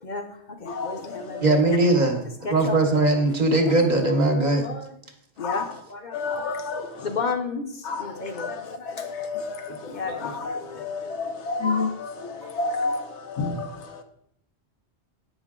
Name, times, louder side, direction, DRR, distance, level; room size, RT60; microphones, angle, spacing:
voice 1, 0.0-1.8 2.4-2.8 4.3-5.0 5.4-6.5 7.0-9.1 9.6-11.1 12.4-13.1 13.4-13.5, left 4 dB, 45° left, 0.8 m, -34 dB
voice 2, 0.7-1.0 1.3-1.4 5.4-5.7 6.1-6.9 7.8-8.1 8.3-8.5 9.0-9.6 10.2-13.8, left 4 dB, 85° left, 1.1 m, -29 dB
voice 3, 1.4-2.2 2.5-4.6, right 2 dB, 40° right, 1.1 m, -20 dB
8.2 x 5.4 x 3.7 m
omnidirectional pair, 1.1 m